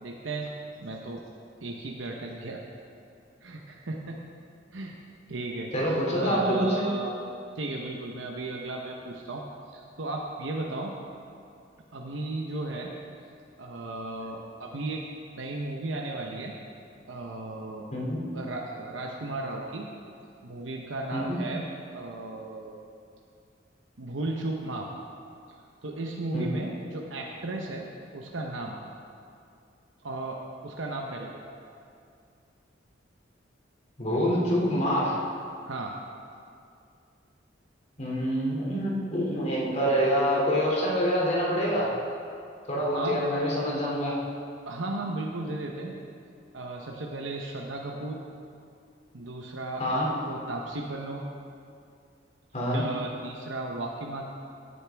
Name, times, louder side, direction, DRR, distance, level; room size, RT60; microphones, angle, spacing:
voice 1, 0.0-0.5 0.8-1.2 1.6-2.6 3.4-4.2 4.7-4.9 5.3-7.1 7.5-10.9 11.9-12.9 13.6-15.1 15.4-16.5 17.1-17.8 18.3-19.9 20.4-21.6 21.9-22.8 24.0-24.9 25.8-27.9 28.1-28.7 30.0-31.5 35.7-36.0 42.9-43.2 44.7-46.0 46.5-48.2 49.1-51.2 52.7-54.2, right 2 dB, 80° right, 0 dB, 0.9 m, -35 dB
voice 2, 5.7-6.9 17.9-18.2 21.1-21.4 26.3-26.5 34.0-35.2 38.0-41.9 42.7-44.1 49.8-50.1 52.5-52.8, equal, 40° left, -4 dB, 2.6 m, -26 dB
16.5 x 9.3 x 3.5 m, 2.4 s
head